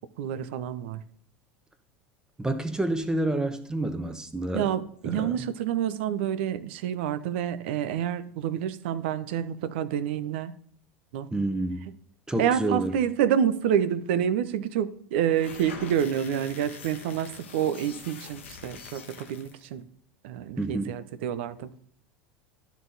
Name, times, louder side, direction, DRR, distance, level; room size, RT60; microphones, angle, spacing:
voice 1, 0.2-1.0 4.5-10.6 11.1-11.3 12.4-19.9 20.2-21.7, right 9 dB, 70° right, 0.6 m, -28 dB
voice 2, 2.4-4.7 5.0-5.4 11.3-11.8 12.3-13.0 20.6-20.9, right 2 dB, 10° right, 1.1 m, -28 dB
sound 1, 15.2-19.7, left 5 dB, 85° left, 1.0 m, -44 dB
12.0 x 4.1 x 4.0 m
hypercardioid pair, 80°, 6 cm